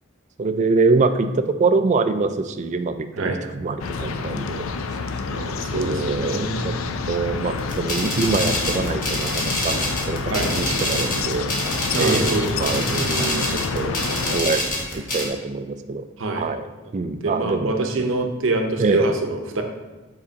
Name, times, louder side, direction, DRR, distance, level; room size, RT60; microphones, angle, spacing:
voice 1, 0.4-4.7 5.7-6.7 7.1-9.8 10.1-10.2 10.5-11.5 12.0-13.9 14.3-14.6 14.9-16.1 16.4-16.6 16.9-17.8 18.8-19.0, right 3 dB, 35° right, 9 dB, 0.3 m, -24 dB
sound 1, 3.8-14.4, left 4 dB, 75° left, 0.4 m, -28 dB
voice 2, 5.3-6.9 10.3-10.5 11.9-13.2 16.2-16.5 16.8-16.9 17.2-19.6, right 2 dB, 65° right, 4 dB, 0.7 m, -25 dB
sound 2, 7.6-15.3, left 1 dB, 40° left, 1.2 m, -26 dB
7.3 x 4.7 x 2.8 m, 1.2 s
head